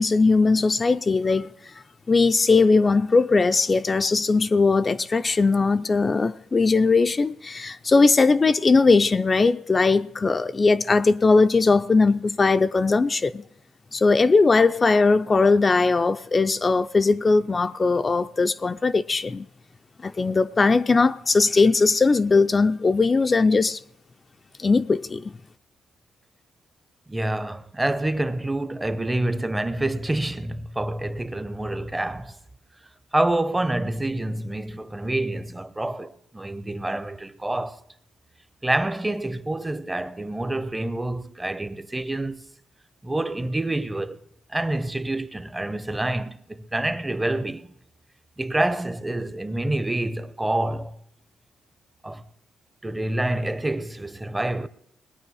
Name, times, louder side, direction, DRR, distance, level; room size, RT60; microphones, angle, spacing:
voice 1, 0.0-1.5 2.1-13.4 13.9-19.5 20.0-23.8 24.6-25.3, left 4 dB, 30° left, 0.4 m, -19 dB
voice 2, 27.1-32.4 33.1-37.8 38.6-42.4 43.0-44.2 44.5-47.7 48.4-51.0 52.0-52.2 52.8-54.7, right 1 dB, 15° right, 0.7 m, -27 dB
20.0 x 9.1 x 4.8 m
cardioid pair, 90°, 0 cm